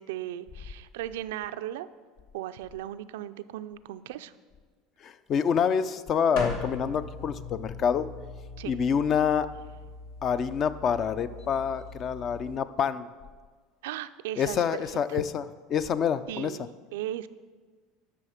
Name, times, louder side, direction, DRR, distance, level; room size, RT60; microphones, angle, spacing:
voice 1, 0.0-1.9 2.3-4.3 8.6-8.8 13.8-14.6 15.1-15.2 16.3-17.3, right 13 dB, 90° right, 12 dB, 0.4 m, -37 dB
voice 2, 5.0-8.1 8.6-9.5 10.2-13.1 14.4-16.7, left 7 dB, 40° left, 14 dB, 0.4 m, -27 dB
sound 1, 6.4-12.6, left 3 dB, 85° left, 2.3 m, -39 dB
11.5 x 6.1 x 5.0 m, 1.5 s
supercardioid pair, 115°, 0 cm